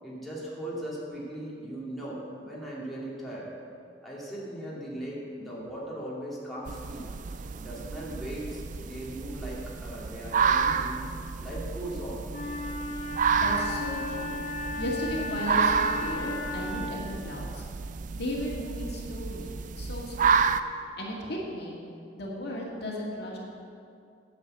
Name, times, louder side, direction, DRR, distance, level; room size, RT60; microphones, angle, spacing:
voice 1, 0.0-3.5 4.0-7.1 7.6-11.0 11.4-12.2, right 1 dB, ahead, -8 dB, 2.6 m, -38 dB
sound 1, 6.7-20.6, right 6 dB, 45° right, 0.4 m, -30 dB
Wind instrument woodwind instrument, 12.3-17.1, left 2 dB, 45° left, 1.2 m, -35 dB
voice 2, 13.4-14.4 14.8-17.6 18.1-20.5 21.0-21.8 22.1-23.4, equal, 65° left, -3 dB, 2.1 m, -35 dB
10.0 x 7.4 x 8.0 m, 2.5 s
head